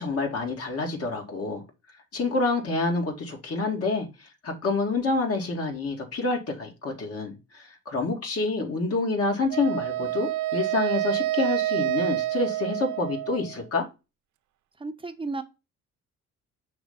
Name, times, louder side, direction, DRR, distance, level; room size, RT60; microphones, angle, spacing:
voice 1, 0.0-1.6 2.1-13.9, left 3 dB, 50° left, 2.1 m, -28 dB
Wind instrument woodwind instrument, 9.5-13.6, right 14 dB, 75° right, 0.5 m, -28 dB
voice 2, 14.8-15.4, right 3 dB, 15° right, 0.9 m, -33 dB
5.9 x 3.3 x 5.4 m
cardioid pair, 90°, 30 cm